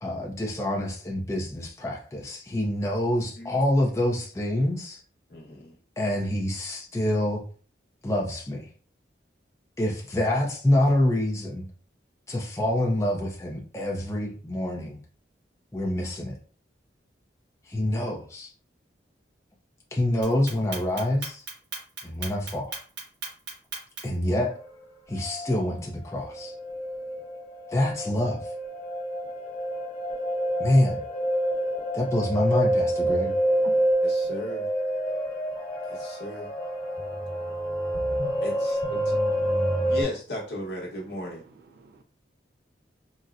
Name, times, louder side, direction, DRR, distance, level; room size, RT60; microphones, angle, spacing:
voice 1, 0.0-5.0 6.0-7.4 8.0-8.7 9.8-11.6 12.3-15.0 15.7-16.3 17.7-18.5 19.9-21.4 22.0-22.7 24.0-24.5 25.1-26.5 27.7-28.4 30.6-31.0 31.9-33.3, left 1 dB, 15° left, 0.5 m, -26 dB
voice 2, 5.3-5.8 9.9-10.0 34.0-34.7 35.8-36.5 38.3-39.2 39.9-41.4, left 1 dB, 60° left, 1.1 m, -36 dB
Clock, 20.2-24.2, right 4 dB, 80° right, 1.3 m, -36 dB
sound 1, 24.5-24.6 25.1-25.7 26.0-40.0, right 1 dB, 30° left, 1.4 m, -28 dB
voice 3, 33.1-33.9 39.0-40.0 41.7-42.0, right 3 dB, 55° right, 0.4 m, -49 dB
4.0 x 2.1 x 2.5 m
head